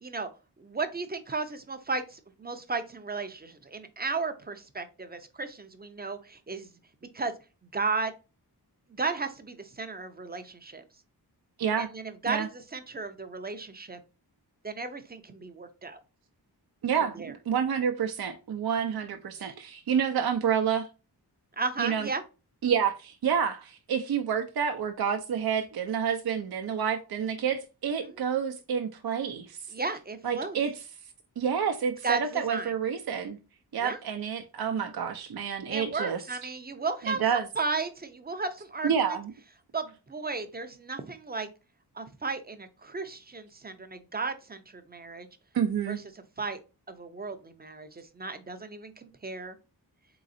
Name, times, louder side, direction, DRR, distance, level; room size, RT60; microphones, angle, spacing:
voice 1, 0.6-6.7 7.1-7.3 7.7-8.1 8.9-10.8 11.8-14.0 14.6-16.0 17.1-17.3 19.4-19.5 21.6-22.2 28.0-28.2 29.7-30.6 32.0-32.7 33.8-34.0 35.7-37.2 37.6-39.2 39.7-41.5 41.9-45.3 45.9-46.0 46.4-46.6 46.9-49.6, right 4 dB, 25° right, 0.6 m, -34 dB
voice 2, 16.8-20.9 21.8-22.1 22.6-29.6 30.2-30.7 31.4-33.4 33.7-36.2 37.0-37.5 38.8-39.3 45.5-46.0, right 7 dB, 65° right, 0.6 m, -29 dB
4.0 x 3.9 x 2.6 m
wide cardioid pair, 85°, 40 cm